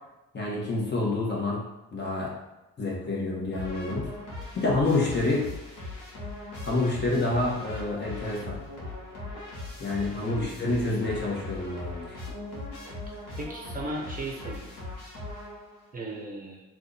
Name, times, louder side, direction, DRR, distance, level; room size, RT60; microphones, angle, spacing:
voice 1, 0.3-1.7 1.9-2.4 2.8-4.1 4.5-5.5 6.6-8.6 9.8-12.2, left 2 dB, 35° left, -3 dB, 1.1 m, -28 dB
sound 1, 3.5-15.9, left 2 dB, 85° left, 1.0 m, -39 dB
voice 2, 13.4-14.7 15.9-16.6, right 2 dB, 30° right, -2 dB, 0.7 m, -36 dB
2.7 x 2.4 x 3.8 m, 1.0 s
cardioid pair, 90°, 30 cm